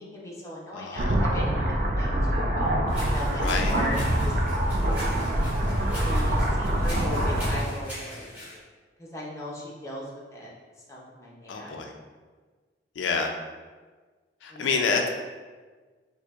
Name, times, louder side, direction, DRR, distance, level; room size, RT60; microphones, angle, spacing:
voice 1, 0.0-2.8 3.0-4.3 6.0-8.3 9.0-10.5 10.9-11.8 14.5-14.8, left 1 dB, 15° left, -4 dB, 0.5 m, -37 dB
voice 2, 0.7-1.2 3.4-3.8 11.5-11.9 13.0-13.3 14.4-15.1, left 4 dB, 80° left, 3 dB, 0.4 m, -28 dB
sound 1, 1.0-7.6, right 1 dB, 50° right, 0.4 m, -25 dB
sound 2, 2.9-8.6, equal, 10° right, 1.1 m, -42 dB
4.3 x 2.6 x 2.4 m, 1.4 s
head